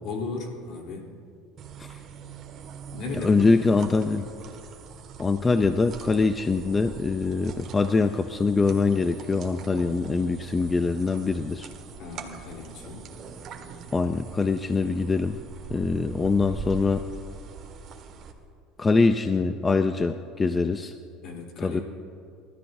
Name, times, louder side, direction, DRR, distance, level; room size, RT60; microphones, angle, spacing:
voice 1, 0.0-1.1 2.9-4.2 12.0-13.0 21.2-21.8, left 3 dB, 60° left, 0 dB, 3.6 m, -36 dB
sound 1, 1.6-18.3, right 5 dB, 45° right, 1.8 m, -42 dB
voice 2, 3.2-4.2 5.2-11.7 13.9-15.4 15.7-17.1 18.8-20.9 21.6-21.8, left 4 dB, 20° left, 8 dB, 0.6 m, -23 dB
30.0 x 13.5 x 2.7 m, 2.4 s
supercardioid pair, 115°, 0 cm